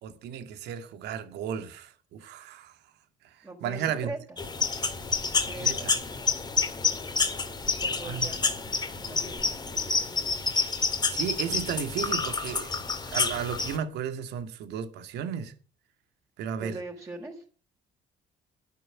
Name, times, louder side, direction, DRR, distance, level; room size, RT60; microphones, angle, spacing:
voice 1, 0.0-2.8 3.2-4.1 5.4-6.0 7.8-8.3 11.1-15.5 16.4-16.8, right 8 dB, 80° right, 2.3 m, -34 dB
voice 2, 3.4-4.2 5.3-6.2 7.6-10.3 16.6-17.4, right 2 dB, 15° right, 4.6 m, -42 dB
sound 1, 4.4-13.8, left 4 dB, 25° left, 2.2 m, -28 dB
12.5 x 10.0 x 7.5 m
cardioid pair, 110°, 17 cm